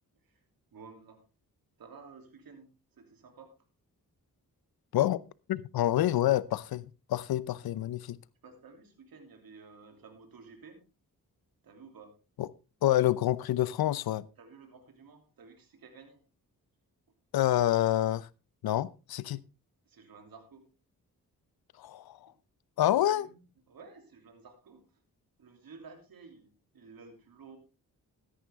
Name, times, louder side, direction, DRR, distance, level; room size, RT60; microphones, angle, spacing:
voice 1, 0.7-1.2 1.8-3.5 5.9-6.1 8.4-10.9 11.6-12.2 14.4-16.2 19.9-20.7 23.1-25.0 25.4-27.6, right 4 dB, 75° right, 3.0 m, -53 dB
voice 2, 5.5-8.2 12.4-12.5 12.8-14.3 17.3-18.3 18.6-19.4 21.8-22.3 22.8-23.3, left 13 dB, 85° left, 0.7 m, -27 dB
13.5 x 10.0 x 3.6 m
cardioid pair, 55°, 36 cm